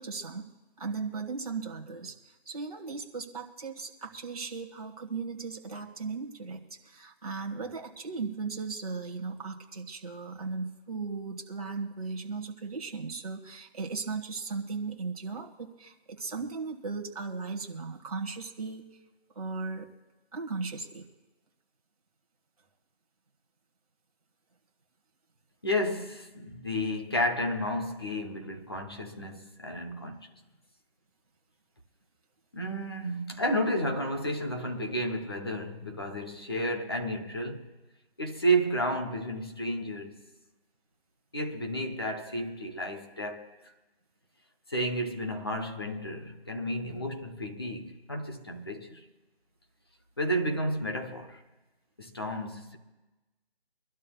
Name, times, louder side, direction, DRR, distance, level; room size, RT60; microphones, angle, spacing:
voice 1, 0.0-19.0 19.3-19.9 20.3-21.0, right 4 dB, 35° right, 1.6 m, -37 dB
voice 2, 25.6-30.3 32.5-37.7 38.2-40.2 41.3-43.6 44.7-49.0 50.2-51.4 52.0-52.8, equal, 25° left, 0.9 m, -32 dB
25.0 x 12.0 x 2.3 m
figure-of-eight pair, 175°, 31 cm